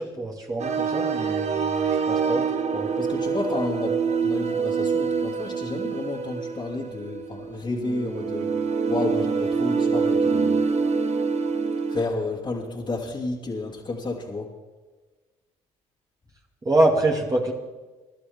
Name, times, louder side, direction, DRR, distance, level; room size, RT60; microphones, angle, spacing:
voice 1, 0.0-2.4 2.7-2.9 16.6-17.5, right 2 dB, 25° right, -1 dB, 2.4 m, -25 dB
sound 1, 0.6-12.0, right 5 dB, 50° right, 1.4 m, -25 dB
voice 2, 3.0-8.5 8.9-10.6 11.9-14.5, left 3 dB, 35° left, -4 dB, 2.6 m, -31 dB
24.0 x 11.5 x 3.6 m, 1.3 s
supercardioid pair, 65°, 14 cm